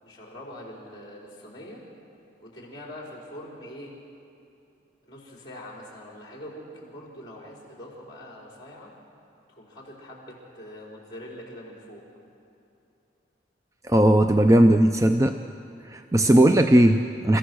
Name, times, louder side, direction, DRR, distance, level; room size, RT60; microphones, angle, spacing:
voice 1, 0.0-1.8 2.4-3.9 5.0-8.9 9.6-12.0, left 1 dB, 20° left, -3 dB, 4.7 m, -43 dB
voice 2, 13.9-15.3 15.9-17.4, right 1 dB, 15° right, 6 dB, 0.5 m, -18 dB
29.5 x 15.0 x 6.3 m, 2.7 s
head